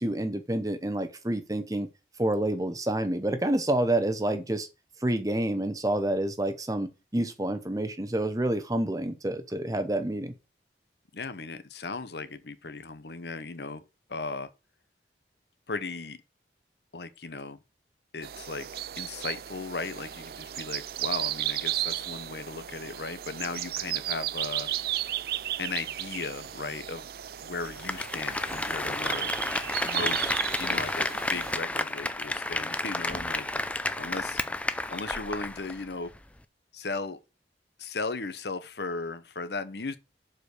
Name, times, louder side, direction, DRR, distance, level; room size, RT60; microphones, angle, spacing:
voice 1, 0.0-1.9 2.2-4.7 5.0-10.3, right 1 dB, 20° right, 0.8 m, -28 dB
voice 2, 11.1-13.8 14.1-14.5 15.7-16.2 16.9-17.6 18.1-18.7 19.0-24.7 25.6-27.1 27.4-29.3 29.8-30.3 30.6-34.4 34.9-36.1 36.7-37.2 37.8-40.0, left 3 dB, 70° left, 1.0 m, -36 dB
sound 1, 18.2-31.5, right 13 dB, 55° right, 0.4 m, -34 dB
Applause, 27.6-35.8 36.1-36.2, left 2 dB, 5° left, 0.4 m, -31 dB
7.1 x 5.2 x 6.5 m
head